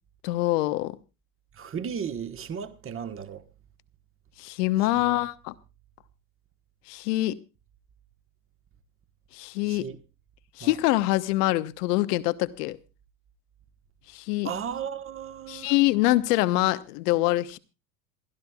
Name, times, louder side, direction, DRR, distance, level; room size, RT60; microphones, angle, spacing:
voice 1, 0.2-1.0 4.4-5.5 6.9-7.4 9.3-9.9 10.6-12.8 14.1-14.5 15.5-17.6, left 17 dB, 70° left, 1.1 m, -25 dB
voice 2, 1.6-3.4 5.0-5.2 9.7-10.0 10.6-10.7 14.4-15.7, right 7 dB, 25° right, 1.4 m, -35 dB
28.0 x 12.5 x 2.4 m
hypercardioid pair, 100°, 50 cm